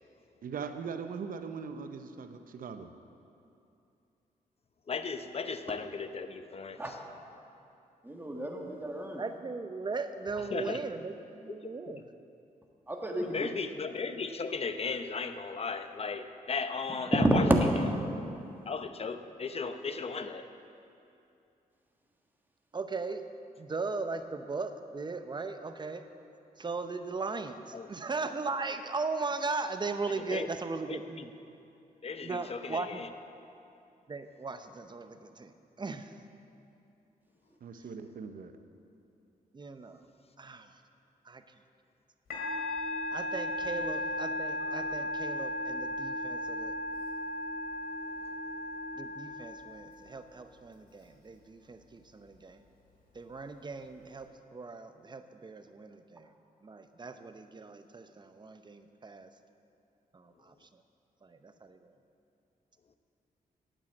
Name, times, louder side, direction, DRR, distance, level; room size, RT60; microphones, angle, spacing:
voice 1, 0.4-2.9 37.6-38.6, right 6 dB, 65° right, 8 dB, 0.7 m, -40 dB
voice 2, 4.9-7.0 10.5-10.8 11.6-11.7 13.2-17.5 18.7-20.5 27.7-27.9 30.3-30.5 30.9-31.2 32.0-33.1, left 5 dB, 40° left, 9 dB, 0.7 m, -36 dB
voice 3, 8.0-9.2 12.9-13.4 17.1-17.4, right 1 dB, 10° right, 1 dB, 1.6 m, -30 dB
voice 4, 9.2-12.1 22.7-23.3 23.6-26.1 26.6-31.3 32.2-33.1 34.1-36.2 39.5-40.0 40.4-40.8 41.2-41.4 43.1-46.8 48.9-52.6 53.1-56.3 56.6-59.3 60.1-60.8 61.2-61.9, right 4 dB, 30° right, 9 dB, 0.7 m, -38 dB
Musical instrument, 42.3-49.9, left 1 dB, 85° left, 2.4 m, -35 dB
9.1 x 8.8 x 7.8 m, 2.7 s
cardioid pair, 80°, 16 cm